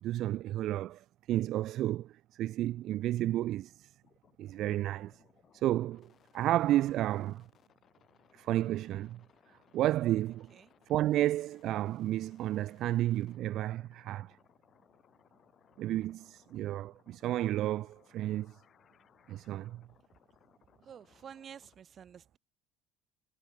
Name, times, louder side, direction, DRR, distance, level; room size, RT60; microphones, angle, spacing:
voice 1, 0.0-3.9 4.4-5.1 5.5-6.1 6.3-7.4 8.3-9.2 9.7-10.5 10.9-14.4 15.8-18.5 19.3-19.8, right 14 dB, 60° right, 0.4 m, -32 dB
sound 1, 4.0-21.8, left 9 dB, 45° left, 7.9 m, -66 dB
voice 2, 20.8-22.4, right 8 dB, 45° right, 2.3 m, -50 dB
hypercardioid pair, 70°, 0 cm